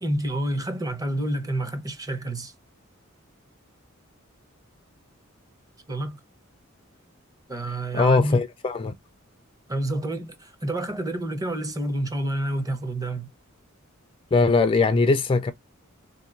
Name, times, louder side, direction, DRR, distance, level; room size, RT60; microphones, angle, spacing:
voice 1, 0.0-2.5 5.9-6.2 7.5-8.4 9.7-13.3, right 1 dB, 15° right, 0.7 m, -28 dB
voice 2, 7.9-8.9 14.3-15.5, left 3 dB, 25° left, 0.3 m, -20 dB
3.8 x 2.8 x 2.3 m
head